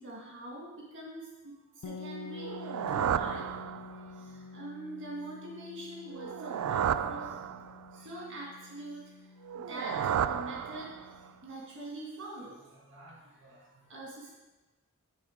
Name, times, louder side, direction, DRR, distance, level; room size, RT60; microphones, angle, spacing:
voice 1, 0.0-3.5 3.9-7.4 7.9-14.3, right 1 dB, 60° right, -3 dB, 1.5 m, -44 dB
sound 1, 1.8-11.6, left 4 dB, 60° left, 0.4 m, -48 dB
sound 2, 2.4-4.2 6.1-8.0 9.4-11.3, right 8 dB, 90° right, 0.3 m, -33 dB
9.0 x 3.5 x 4.9 m, 1.1 s
head